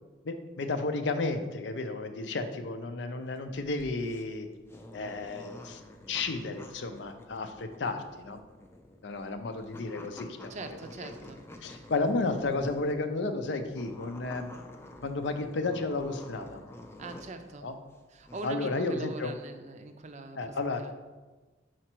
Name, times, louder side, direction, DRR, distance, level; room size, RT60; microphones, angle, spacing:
voice 1, 0.2-4.5 4.9-5.8 6.1-8.4 9.0-10.5 11.0-11.1 11.6-14.5 15.0-16.6 17.6-17.8 18.4-19.3 20.4-20.8, left 3 dB, 70° left, 8 dB, 0.5 m, -32 dB
sound 1, 3.2-13.1 13.6-17.5 17.9-18.5, left 1 dB, 15° left, 0.4 m, -49 dB
voice 2, 10.5-11.9 17.0-17.7 18.1-20.9, right 2 dB, 40° right, 7 dB, 0.5 m, -43 dB
4.9 x 4.4 x 4.4 m, 1.3 s
head